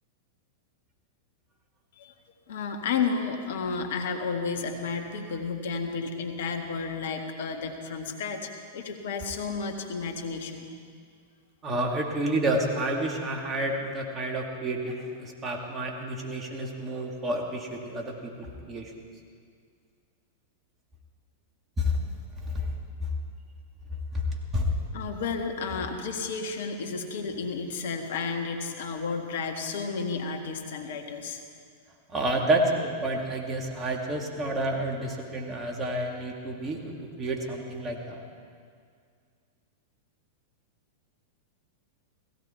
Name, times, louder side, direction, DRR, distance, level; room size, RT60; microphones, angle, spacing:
voice 1, 2.5-10.7 24.9-31.4, left 5 dB, 65° left, 4 dB, 1.6 m, -32 dB
voice 2, 11.6-18.9 21.8-22.0 22.5-22.7 23.0-23.1 24.1-24.2 24.5-24.7 32.1-38.2, right 1 dB, 25° right, 1 dB, 2.3 m, -29 dB
16.5 x 16.5 x 4.5 m, 2.2 s
hypercardioid pair, 100°, 0 cm